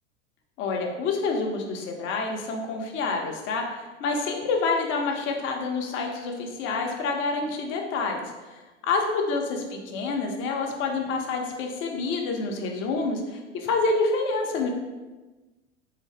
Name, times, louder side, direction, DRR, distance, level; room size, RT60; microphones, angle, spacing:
voice 1, 0.6-3.6 4.0-14.7, left 3 dB, 35° left, 2 dB, 0.7 m, -28 dB
3.9 x 2.8 x 3.3 m, 1.2 s
figure-of-eight pair, 90°, 36 cm